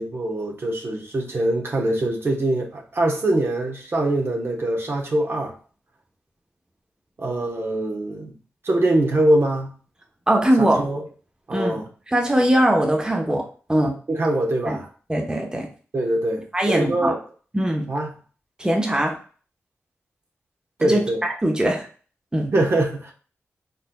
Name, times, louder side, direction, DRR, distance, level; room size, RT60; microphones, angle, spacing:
voice 1, 0.0-5.6 7.2-8.4 8.6-9.7 10.6-11.0 11.5-11.9 14.1-14.9 15.9-17.3 17.9-18.2 20.8-21.2 22.5-23.1, right 1 dB, 55° right, 1.0 m, -23 dB
voice 2, 10.3-10.8 11.5-11.8 12.1-14.0 14.7-14.8 15.1-15.7 16.5-17.1 17.5-17.9 18.6-19.2 20.8-21.0 21.4-21.9 22.3-22.5, right 1 dB, 15° right, 0.9 m, -21 dB
4.1 x 3.9 x 2.2 m
cardioid pair, 65°, 5 cm